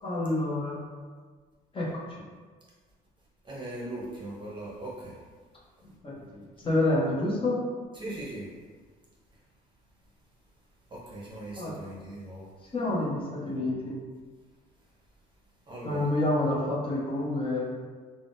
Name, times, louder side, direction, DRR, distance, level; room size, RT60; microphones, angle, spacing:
voice 1, 0.0-0.8 1.7-1.9 5.8-7.6 11.5-11.7 12.7-14.0 15.8-17.6, left 2 dB, 30° left, -6 dB, 0.8 m, -28 dB
voice 2, 3.4-5.1 8.0-8.5 10.9-12.5 15.7-16.0, right 1 dB, 30° right, -5 dB, 0.8 m, -39 dB
3.5 x 2.1 x 2.6 m, 1.5 s
cardioid pair, 110°, 17 cm